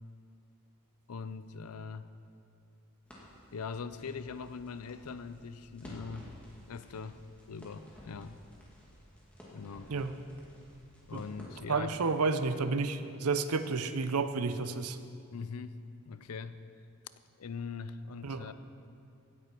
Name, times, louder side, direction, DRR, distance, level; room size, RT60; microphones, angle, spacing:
voice 1, 1.1-2.1 3.5-6.3 6.7-7.2 7.5-8.4 9.5-9.9 11.1-11.9 15.3-16.6 17.4-18.5, left 5 dB, 80° left, 13 dB, 0.5 m, -41 dB
Crackle, 3.1-12.3, equal, 5° left, 2.3 m, -53 dB
voice 2, 11.7-15.0 18.2-18.5, right 4 dB, 80° right, 11 dB, 0.7 m, -31 dB
16.5 x 9.9 x 4.5 m, 2.5 s
head